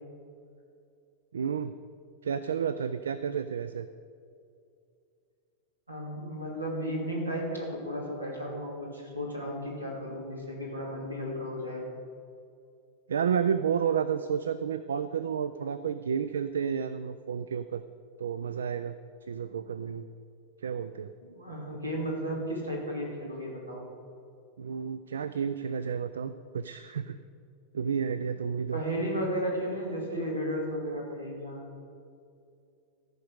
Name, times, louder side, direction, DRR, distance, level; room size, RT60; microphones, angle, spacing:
voice 1, 1.3-1.7 2.2-3.9 13.1-17.8 18.2-19.0 19.3-20.0 20.6-21.1 24.6-27.2 27.7-28.8, right 7 dB, 65° right, 13 dB, 0.3 m, -31 dB
voice 2, 5.9-11.9 21.2-23.9 28.7-31.6, equal, 85° right, -2 dB, 2.6 m, -34 dB
14.0 x 5.3 x 6.4 m, 2.4 s
figure-of-eight pair, 90°, 0 cm